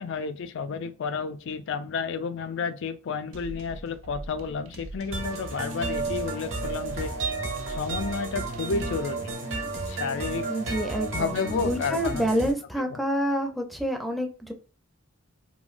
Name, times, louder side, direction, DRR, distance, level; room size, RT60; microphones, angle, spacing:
voice 1, 0.0-7.1 7.7-9.3 9.9-10.5 11.1-12.3 12.8-13.0, left 5 dB, 60° left, 0.4 m, -31 dB
sound 1, 3.3-9.0, right 2 dB, 80° right, 0.5 m, -43 dB
sound 2, 5.1-12.5, right 3 dB, 65° right, 0.9 m, -32 dB
voice 2, 10.5-14.5, equal, ahead, 0.5 m, -28 dB
3.0 x 2.2 x 2.5 m
head